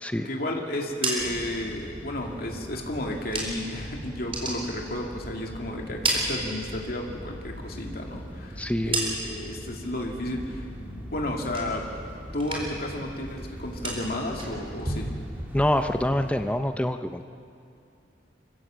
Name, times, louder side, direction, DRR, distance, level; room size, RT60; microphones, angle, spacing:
voice 1, 0.2-11.9 12.3-15.1, left 1 dB, 55° left, 1 dB, 2.4 m, -32 dB
sound 1, 0.7-3.8 4.1-5.5 5.8-7.1 7.4-9.6 9.9-10.4 10.7-12.1 12.3-12.9 13.2-16.1, right 2 dB, 30° right, 4.3 m, -34 dB
sound 2, 1.2-16.5, equal, 10° right, 2.1 m, -41 dB
voice 2, 8.6-9.0 15.5-17.2, left 1 dB, 5° left, 8 dB, 0.6 m, -26 dB
25.0 x 16.0 x 7.5 m, 2.5 s
head